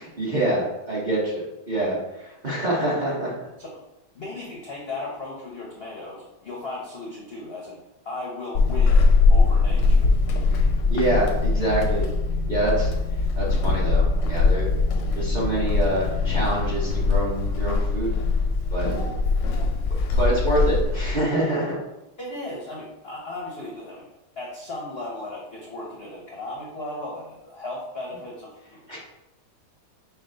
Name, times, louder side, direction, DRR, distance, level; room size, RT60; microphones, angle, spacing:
voice 1, 0.0-3.3 10.5-10.6 10.9-12.0 12.5-12.9 13.4-14.7 15.1-18.2 18.7-18.9 20.1-21.7 28.9-29.0, right 1 dB, 35° right, -6 dB, 0.8 m, -26 dB
voice 2, 4.1-9.0 9.3-10.1 18.9-19.1 19.4-19.7 22.2-24.1 24.4-28.8, left 2 dB, 55° left, -3 dB, 0.6 m, -36 dB
Walk footsteps / Squeak, 8.5-21.2, left 3 dB, 85° left, 1.3 m, -21 dB
5.7 x 2.3 x 3.8 m, 0.96 s
omnidirectional pair, 1.9 m